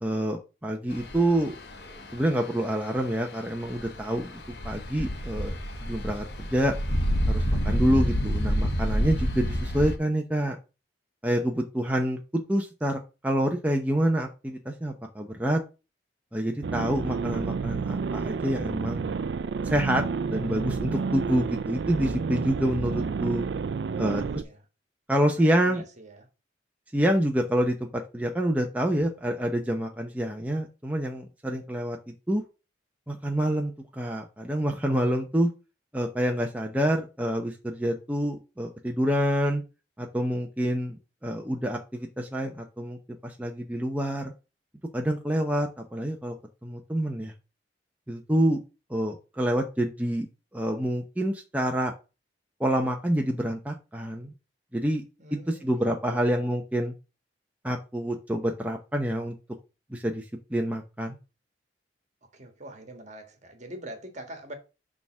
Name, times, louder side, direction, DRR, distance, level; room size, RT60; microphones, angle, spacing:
voice 1, 0.0-1.6 1.8-5.5 5.8-6.7 7.3-10.6 11.2-15.6 16.3-19.1 19.6-23.5 24.0-24.2 25.1-25.8 26.9-32.4 33.1-35.5 35.9-39.6 40.0-43.0 43.2-44.3 44.9-46.4 46.6-47.3 48.1-48.6 48.9-50.3 50.5-51.9 52.6-54.3 54.7-55.0 55.3-56.9 57.6-59.4 59.9-60.2 60.5-61.2, right 1 dB, 10° right, 0.8 m, -27 dB
sound 1, 0.9-10.0, equal, 65° left, 1.5 m, -28 dB
sound 2, 16.6-24.4, right 5 dB, 70° right, 0.4 m, -30 dB
voice 2, 23.9-24.6 25.3-26.3 55.2-56.3 62.3-64.5, right 1 dB, 40° right, 1.7 m, -43 dB
6.7 x 3.6 x 6.1 m
head